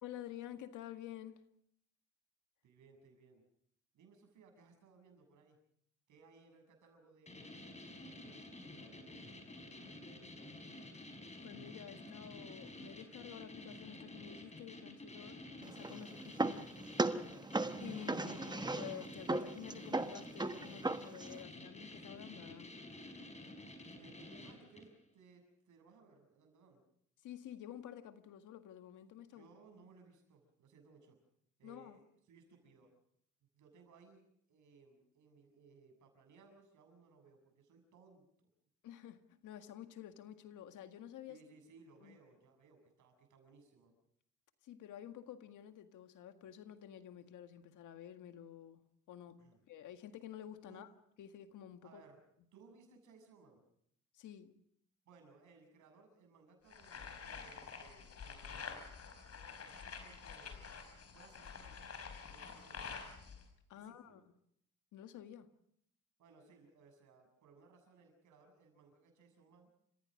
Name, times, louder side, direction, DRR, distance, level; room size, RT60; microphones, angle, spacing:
voice 1, 0.0-1.4 11.4-16.7 17.8-22.8 27.2-29.5 31.6-32.0 38.8-41.4 42.0-42.2 44.6-48.8 49.1-49.4 49.7-50.9 51.2-52.0 54.1-54.5 63.7-64.2 64.9-65.5, left 10 dB, 80° left, 1.9 m, -50 dB
voice 2, 2.6-3.4 3.9-5.6 6.1-10.7 24.0-26.8 29.3-31.2 31.6-32.9 33.5-38.5 41.3-43.9 49.4-49.6 50.7-50.8 51.8-52.2 52.5-53.6 55.1-58.8 59.3-60.7 61.1-61.9 62.2-63.0 63.7-64.2 66.2-69.7, right 4 dB, 75° right, 7.3 m, -63 dB
sound 1, 7.3-25.0, left 1 dB, 20° left, 5.1 m, -51 dB
sound 2, 15.6-21.4, right 2 dB, 15° right, 1.2 m, -38 dB
sound 3, 56.7-63.4, left 6 dB, 55° left, 5.0 m, -48 dB
30.0 x 16.0 x 6.5 m
cardioid pair, 90°, 30 cm